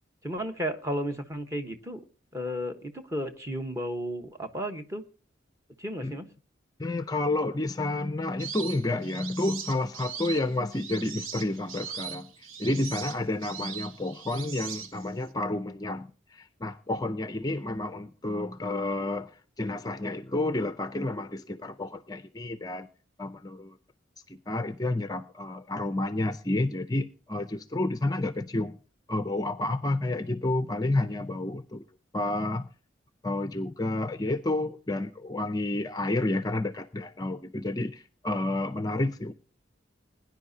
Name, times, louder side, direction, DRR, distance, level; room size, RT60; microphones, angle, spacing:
voice 1, 0.2-2.0 2.3-5.0 5.8-6.3, equal, 15° right, 5 dB, 1.2 m, -33 dB
voice 2, 6.8-22.9 23.2-23.8 24.3-28.8 29.1-31.8 32.1-32.7 33.2-39.3, left 2 dB, 20° left, 10 dB, 0.5 m, -30 dB
sound 1, 8.4-15.3, right 7 dB, 90° right, 1.1 m, -40 dB
21.0 x 10.5 x 2.8 m, 0.37 s
head